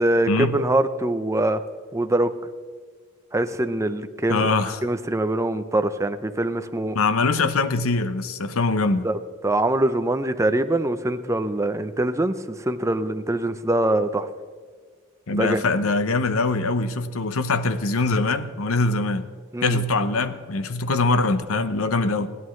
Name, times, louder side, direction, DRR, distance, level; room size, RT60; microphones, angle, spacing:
voice 1, 0.0-1.6 1.9-2.3 3.3-7.0 9.0-9.2 9.4-14.3 15.3-15.6 19.5-19.8, right 1 dB, 15° right, 9 dB, 0.6 m, -23 dB
voice 2, 4.3-4.8 6.9-9.1 15.3-19.3 19.6-22.3, left 3 dB, 75° left, 11 dB, 0.8 m, -23 dB
29.0 x 11.0 x 3.2 m, 1.5 s
head